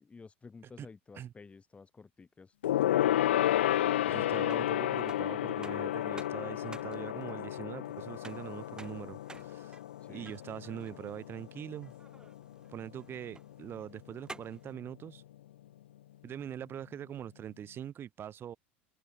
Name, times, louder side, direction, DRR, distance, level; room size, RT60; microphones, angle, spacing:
voice 1, 0.0-2.5 10.0-10.4, left 4 dB, 20° left, 3.4 m, -52 dB
Gong, 2.6-12.4 12.7-13.0 13.3-13.4, left 12 dB, 75° left, 0.5 m, -32 dB
sound 1, 3.1-14.7, right 3 dB, 10° right, 2.7 m, -55 dB
voice 2, 4.1-9.8 10.1-11.9 12.7-15.2 16.2-18.6, right 10 dB, 35° right, 2.9 m, -43 dB
hypercardioid pair, 80°, 6 cm